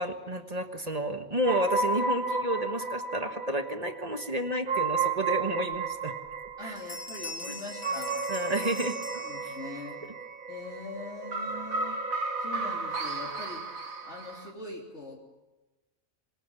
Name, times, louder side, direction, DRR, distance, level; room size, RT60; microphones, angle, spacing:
voice 1, 0.0-6.1 6.6-6.8 8.3-9.0 9.4-9.6, right 1 dB, 30° right, 7 dB, 1.5 m, -31 dB
sound 1, 1.4-14.5, right 3 dB, 85° right, 2.2 m, -33 dB
sound 2, 5.7-5.8 6.3-6.5 6.8-9.9, left 2 dB, 25° left, 5.0 m, -42 dB
voice 2, 6.6-8.2 8.6-8.7 9.1-10.0 10.5-12.0 12.4-15.2, left 2 dB, 55° left, -3 dB, 3.6 m, -42 dB
26.5 x 21.0 x 7.1 m, 1.1 s
omnidirectional pair, 1.4 m